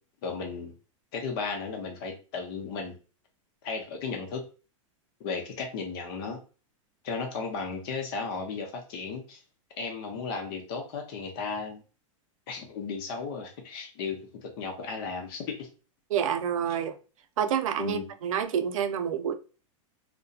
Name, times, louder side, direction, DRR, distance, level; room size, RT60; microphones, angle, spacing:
voice 1, 0.2-0.7 1.1-3.0 3.6-4.4 5.2-6.4 7.0-9.4 9.8-11.8 12.5-15.7 17.8-18.0, left 4 dB, 45° left, 0.7 m, -35 dB
voice 2, 16.1-17.0 17.4-19.3, right 8 dB, 90° right, 0.4 m, -28 dB
2.6 x 2.1 x 2.3 m
supercardioid pair, 160°, 17 cm